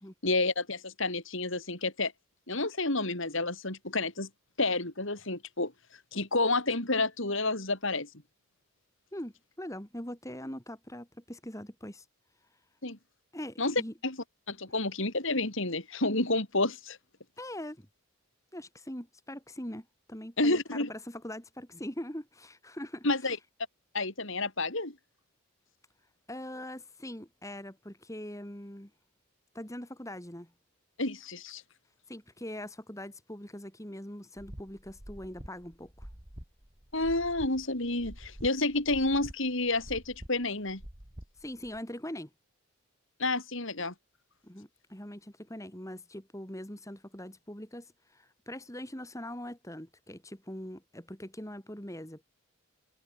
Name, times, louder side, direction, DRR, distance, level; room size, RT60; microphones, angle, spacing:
voice 1, 0.2-2.1 2.5-4.3 4.6-5.7 6.1-8.1 12.8-13.0 13.6-13.7 14.0-14.2 14.5-17.0 20.4-20.9 23.0-23.4 23.9-25.0 31.0-31.6 36.9-40.8 43.2-43.9, left 2 dB, 60° left, 3.7 m, -30 dB
voice 2, 9.1-12.0 13.3-13.9 17.4-17.9 18.5-23.1 26.3-28.9 29.5-30.5 32.1-36.1 41.4-42.3 44.4-52.2, left 1 dB, 15° left, 3.2 m, -42 dB
sound 1, 34.4-41.8, equal, 25° right, 2.7 m, -47 dB
head